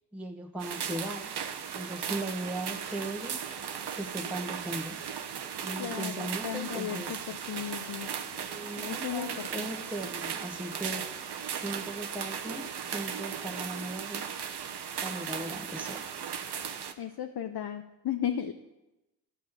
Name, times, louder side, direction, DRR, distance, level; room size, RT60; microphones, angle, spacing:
voice 1, 0.1-1.3 1.7-3.4 3.9-5.0 5.6-7.2 8.3-11.2 11.5-14.3 15.0-16.0, right 1 dB, 5° right, 0 dB, 1.4 m, -38 dB
sound 1, 0.6-16.9, right 7 dB, 65° right, 1.0 m, -37 dB
voice 2, 5.8-8.1 8.8-9.7 17.0-18.5, left 9 dB, 60° left, 7 dB, 0.8 m, -35 dB
12.5 x 6.3 x 7.4 m, 1.0 s
supercardioid pair, 45°, 42 cm